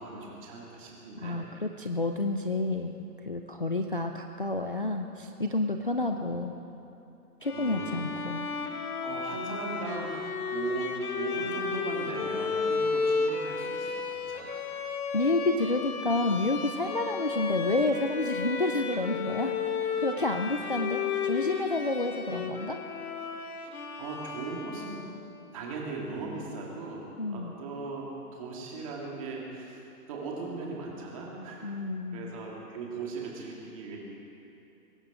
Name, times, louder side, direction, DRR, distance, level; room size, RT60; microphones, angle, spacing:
voice 1, 0.0-1.4 6.0-6.1 7.5-8.1 9.0-10.1 10.5-14.6 24.0-25.0 25.5-29.8 30.1-31.7 32.1-34.0, right 3 dB, 20° right, -2 dB, 2.0 m, -38 dB
voice 2, 1.2-2.9 3.2-6.6 7.4-8.5 15.1-19.5 19.8-22.8 27.2-27.5 31.6-32.4, left 2 dB, 40° left, 4 dB, 0.4 m, -29 dB
Bowed string instrument, 7.4-25.3, left 5 dB, 65° left, 1.5 m, -33 dB
22.5 x 12.0 x 4.9 m, 2.8 s
hypercardioid pair, 175°, 46 cm